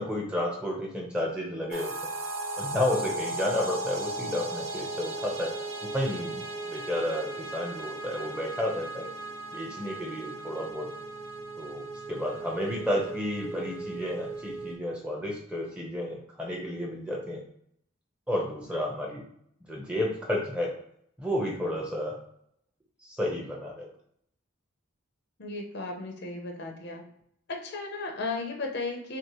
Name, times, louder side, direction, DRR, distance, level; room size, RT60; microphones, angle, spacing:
voice 1, 0.0-1.9 2.6-5.5 5.9-9.1 9.5-10.9 11.6-11.8 12.1-17.4 18.3-19.2 19.7-20.7 21.2-22.2 23.0-23.9, left 1 dB, 5° right, -2 dB, 0.8 m, -31 dB
sound 1, 1.7-14.7, right 2 dB, 65° right, 0.8 m, -37 dB
voice 2, 25.4-27.1 27.5-29.2, left 3 dB, 50° left, 2 dB, 0.7 m, -35 dB
5.8 x 2.1 x 3.0 m, 0.70 s
head